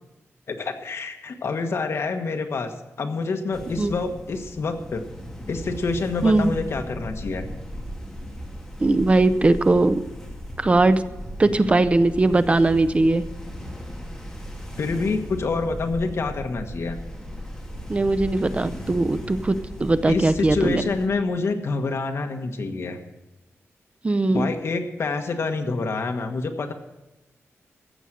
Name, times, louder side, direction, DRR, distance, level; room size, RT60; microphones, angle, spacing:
voice 1, 0.5-2.7 3.0-5.0 5.5-7.5 14.8-17.0 20.1-23.0 24.3-26.7, left 3 dB, 60° left, 5 dB, 1.4 m, -27 dB
sound 1, 3.5-21.1, equal, 10° left, 2.7 m, -37 dB
voice 2, 6.2-6.5 8.8-10.0 10.6-11.0 11.4-13.2 17.9-20.8 24.0-24.5, right 2 dB, 25° right, 13 dB, 0.5 m, -20 dB
14.5 x 8.0 x 7.5 m, 1.0 s
wide cardioid pair, 130°, 5 cm